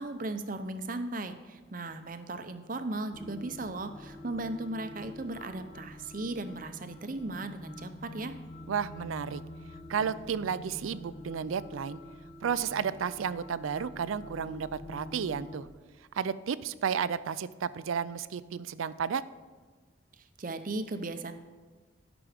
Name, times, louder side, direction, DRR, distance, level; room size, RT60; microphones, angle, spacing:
voice 1, 0.0-8.3 20.2-21.3, right 2 dB, 40° right, 9 dB, 0.6 m, -37 dB
sound 1, 3.1-15.7, left 1 dB, 30° left, 0.6 m, -46 dB
voice 2, 8.7-9.4 9.9-12.0 12.4-15.7 16.1-19.2, right 7 dB, 85° right, 16 dB, 0.4 m, -32 dB
12.5 x 6.1 x 5.0 m, 1.5 s
head